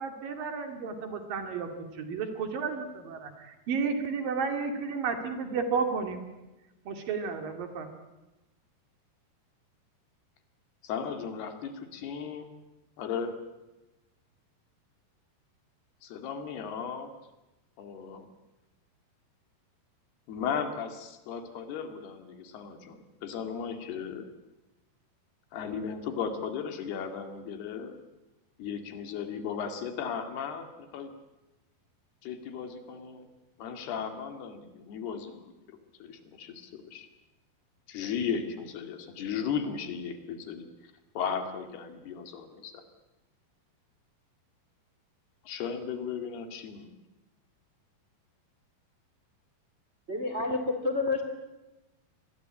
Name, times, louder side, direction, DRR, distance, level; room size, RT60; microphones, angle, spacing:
voice 1, 0.0-6.2 6.9-7.9, right 5 dB, 60° right, 6 dB, 3.9 m, -32 dB
voice 2, 10.8-12.5 13.0-13.4 16.0-17.1 17.8-18.3 20.3-24.3 25.5-28.0 28.6-31.1 32.2-33.3 33.6-37.1 37.9-40.7 41.2-42.8 45.4-46.9, left 7 dB, 75° left, 7 dB, 4.2 m, -36 dB
voice 3, 50.1-51.2, left 3 dB, 20° right, 7 dB, 2.0 m, -29 dB
25.5 x 21.0 x 8.8 m, 1.0 s
omnidirectional pair, 4.7 m